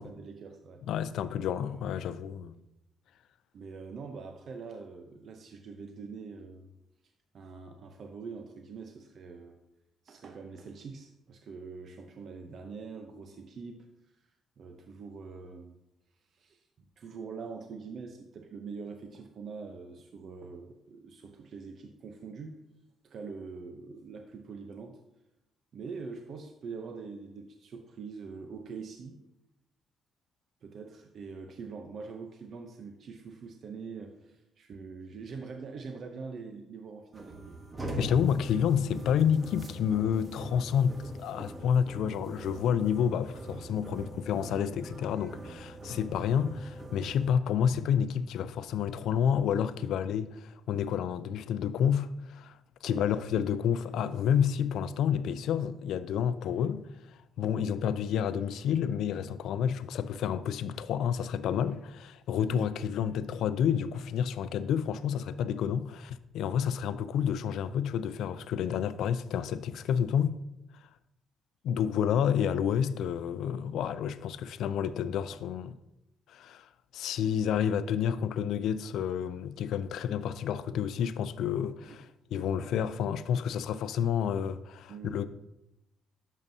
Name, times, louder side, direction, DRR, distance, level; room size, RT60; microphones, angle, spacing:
voice 1, 0.0-0.8 1.6-1.9 3.5-6.7 7.3-9.6 10.0-15.8 16.2-22.6 23.0-25.0 25.7-29.2 30.6-37.6 41.6-41.8 52.9-53.1 54.0-54.2 62.5-62.7 81.8-82.0 84.9-85.2, right 5 dB, 55° right, 0.7 m, -44 dB
voice 2, 0.9-2.6 38.0-52.5 52.8-56.8 57.4-70.4 71.6-75.7 76.3-82.1 82.3-85.3, left 8 dB, 80° left, 0.4 m, -29 dB
sound 1, 37.1-47.3, right 1 dB, 30° right, 1.2 m, -42 dB
10.5 x 7.3 x 2.7 m
cardioid pair, 115°, 0 cm